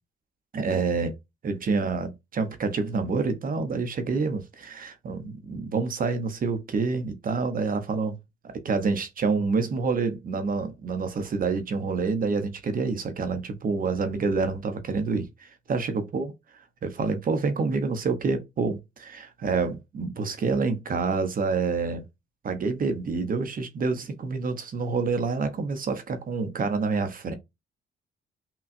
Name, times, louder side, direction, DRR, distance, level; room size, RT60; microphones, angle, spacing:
voice 1, 0.5-1.2 1.4-8.2 8.4-16.3 16.8-22.0 22.4-27.3, right 4 dB, 45° right, 0.8 m, -27 dB
5.7 x 2.3 x 2.6 m
cardioid pair, 90°, 20 cm